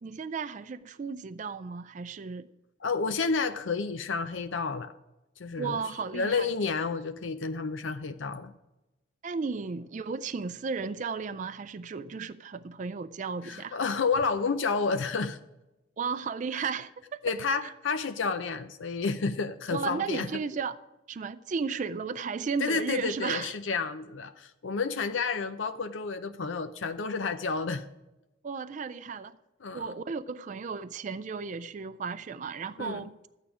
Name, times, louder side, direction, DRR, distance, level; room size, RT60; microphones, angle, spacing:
voice 1, 0.0-2.5 5.6-6.5 9.2-13.8 16.0-17.2 17.6-17.7 19.7-20.8 21.1-23.5 28.4-29.4 29.7-33.2, right 5 dB, 40° right, 0.4 m, -34 dB
voice 2, 2.8-4.9 5.4-5.8 6.1-8.5 13.4-15.4 17.2-20.3 22.6-27.9 29.6-29.9 32.8-33.0, left 4 dB, 75° left, 0.6 m, -30 dB
12.5 x 9.1 x 4.9 m
head